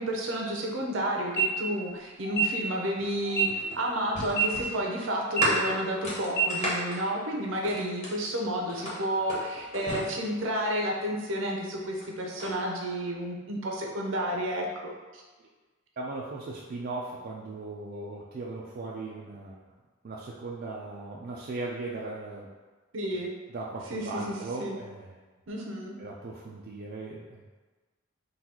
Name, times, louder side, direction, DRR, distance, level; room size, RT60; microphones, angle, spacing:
voice 1, 0.0-14.7 15.1-15.2 22.9-23.3 23.9-24.8 25.5-26.0, equal, 70° right, -1 dB, 0.7 m, -31 dB
sound 1, 1.2-1.4 2.2-2.4 3.2-3.4 4.2-4.4 5.2-5.4 6.2-6.4, right 7 dB, 55° left, 1.3 m, -25 dB
sound 2, 3.0-8.3 8.7-10.8 11.8-12.5, left 1 dB, 35° left, 1.2 m, -34 dB
voice 2, 16.0-19.6 20.0-22.5 23.1-23.2 23.5-25.2 26.0-27.4, right 3 dB, 45° right, -4 dB, 0.4 m, -38 dB
4.0 x 2.3 x 4.3 m, 1.3 s
head